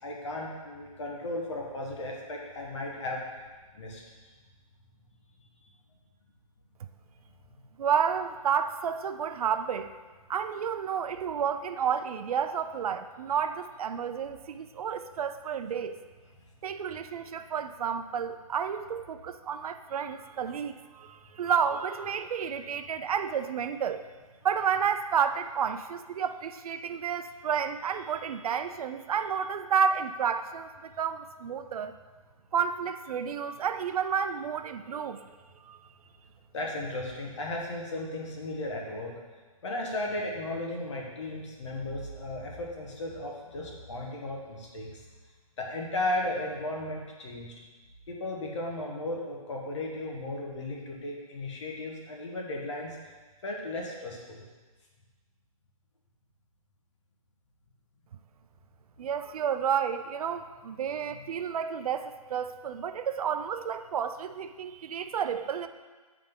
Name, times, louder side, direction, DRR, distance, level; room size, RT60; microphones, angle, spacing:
voice 1, 0.0-3.2 3.7-4.0 36.5-39.1 39.6-44.9 45.6-47.5 48.1-53.0 53.4-54.4, left 1 dB, 50° left, -1 dB, 1.3 m, -35 dB
voice 2, 7.8-9.9 10.3-16.0 16.6-24.1 24.4-31.9 32.5-35.2 35.6-35.9 59.0-65.7, right 7 dB, 80° right, 9 dB, 0.4 m, -31 dB
7.5 x 3.7 x 3.6 m, 1.3 s
hypercardioid pair, 165°, 19 cm